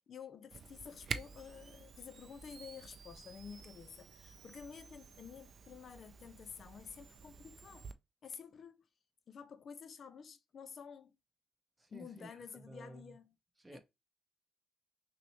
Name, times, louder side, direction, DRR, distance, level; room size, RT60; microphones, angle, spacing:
voice 1, 0.0-7.9 8.2-8.9 9.3-11.2 11.9-13.3 13.7-13.8, left 6 dB, 50° left, 0.4 m, -51 dB
Camera, 0.5-7.9, right 5 dB, 50° right, 0.4 m, -49 dB
voice 2, 11.8-13.2 13.6-13.8, right 1 dB, 15° right, 0.8 m, -53 dB
5.8 x 2.1 x 3.0 m
cardioid pair, 90°, 0 cm